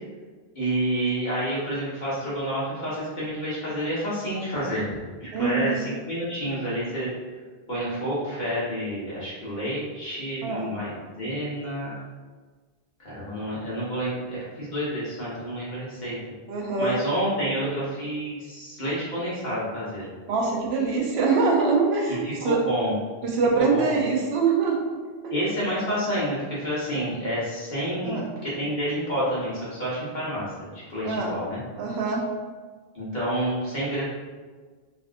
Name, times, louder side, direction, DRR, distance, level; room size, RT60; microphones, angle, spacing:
voice 1, 0.5-4.9 5.2-7.1 7.7-12.0 13.0-16.2 16.8-20.1 22.1-22.9 23.7-23.9 25.3-30.5 30.9-31.6 32.9-34.0, equal, 50° left, -9 dB, 1.3 m, -29 dB
voice 2, 5.3-5.8 10.4-10.7 16.5-17.0 20.3-22.6 23.2-25.3 28.0-28.3 31.0-31.3 31.8-32.3, right 4 dB, 90° right, 0 dB, 0.9 m, -24 dB
3.4 x 2.4 x 2.4 m, 1.4 s
omnidirectional pair, 1.0 m